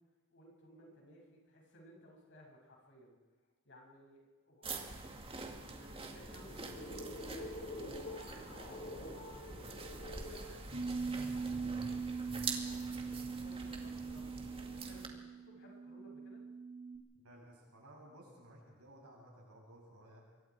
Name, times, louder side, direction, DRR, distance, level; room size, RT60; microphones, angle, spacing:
voice 1, 0.3-3.2 3.7-7.8 8.5-9.3 9.9-10.6 11.2-11.7 12.6-16.4, equal, 55° left, -1 dB, 7.3 m, -59 dB
sound 1, 4.6-15.1, right 3 dB, 25° right, 2.3 m, -46 dB
sound 2, 6.2-14.8, left 1 dB, 35° left, 5.9 m, -49 dB
Bass guitar, 10.7-17.0, right 5 dB, 50° right, 3.5 m, -41 dB
voice 2, 17.2-20.2, right 1 dB, 80° right, -4 dB, 7.7 m, -57 dB
26.5 x 23.5 x 4.9 m, 1.3 s
head